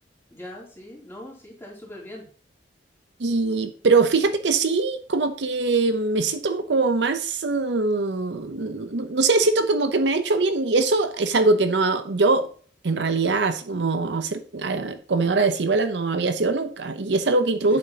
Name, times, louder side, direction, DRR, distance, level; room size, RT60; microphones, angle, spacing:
voice 1, 0.3-2.3 17.7-17.8, left 1 dB, 15° left, -3 dB, 3.0 m, -41 dB
voice 2, 3.2-12.5 12.8-17.8, right 3 dB, 70° right, 9 dB, 0.7 m, -22 dB
8.6 x 7.2 x 2.9 m, 0.42 s
head